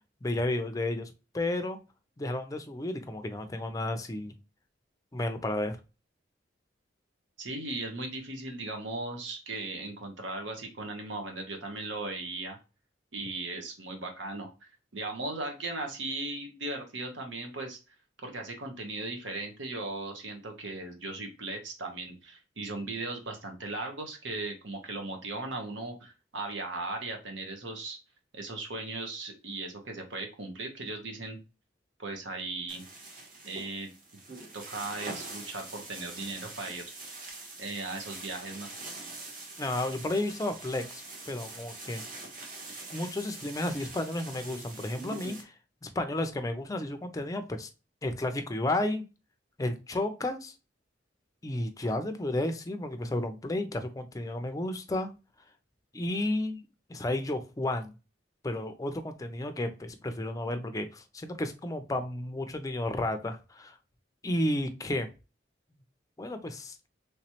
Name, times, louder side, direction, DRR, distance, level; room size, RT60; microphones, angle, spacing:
voice 1, 0.2-1.1 1.3-1.8 2.2-4.3 5.1-5.8 39.6-42.0 42.9-45.5 45.8-47.7 48.0-49.0 49.6-50.5 51.4-55.1 55.9-56.6 56.9-57.9 58.4-63.8 64.2-65.1 66.2-66.8, left 1 dB, 20° left, 7 dB, 0.4 m, -32 dB
voice 2, 7.4-12.6 13.1-17.8 18.2-28.0 28.3-31.4 32.0-32.8 33.4-33.9 34.5-36.8 37.6-38.7, right 2 dB, 80° right, 4 dB, 1.0 m, -37 dB
sound 1, 32.7-45.4, right 2 dB, 45° right, 1.0 m, -44 dB
3.3 x 3.0 x 2.8 m, 0.30 s
head